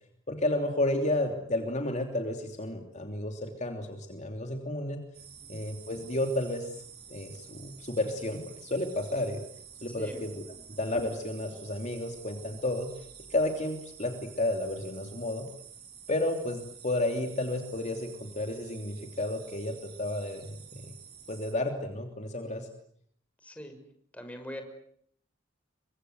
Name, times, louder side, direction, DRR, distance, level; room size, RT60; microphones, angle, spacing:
voice 1, 0.3-5.0 5.5-6.7 7.1-9.4 9.8-10.4 10.7-12.9 13.3-15.5 16.1-20.9 21.3-22.7, left 1 dB, 35° left, 4 dB, 3.1 m, -32 dB
sound 1, 5.1-21.5, right 7 dB, 55° right, 7.1 m, -50 dB
voice 2, 23.4-23.8 24.1-24.6, equal, 5° left, 5 dB, 5.9 m, -41 dB
30.0 x 24.5 x 8.0 m, 0.67 s
head